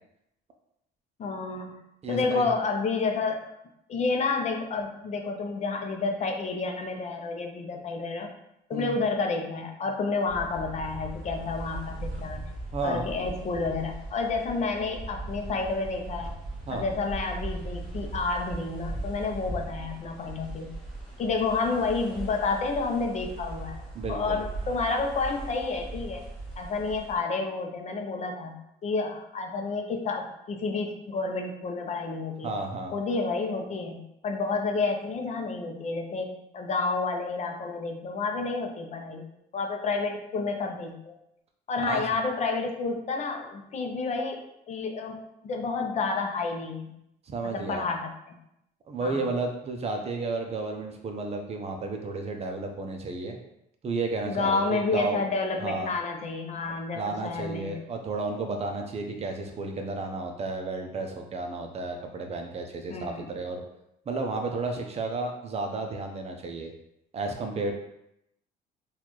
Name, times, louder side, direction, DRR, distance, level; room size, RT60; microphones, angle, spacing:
voice 1, 1.2-1.8 2.1-3.5 3.9-8.3 8.7-12.4 12.8-16.3 16.7-20.7 21.2-23.8 24.1-26.2 26.6-32.5 32.9-41.1 41.7-45.2 45.4-46.9 47.4-48.4 49.0-49.3 54.3-57.8 62.9-63.2, left 4 dB, 45° left, 3 dB, 0.6 m, -30 dB
voice 2, 2.0-2.5 8.7-9.0 12.7-13.0 16.7-16.8 23.9-24.4 32.4-32.9 41.9-42.0 47.3-47.8 48.9-53.4 53.8-55.2 55.6-55.9 56.9-63.6 64.1-66.7 67.1-67.7, right 3 dB, 40° right, 3 dB, 0.6 m, -32 dB
sound 1, 10.3-27.2, right 2 dB, 5° left, 1.2 m, -39 dB
4.1 x 2.4 x 3.1 m, 0.80 s
cardioid pair, 110°, 17 cm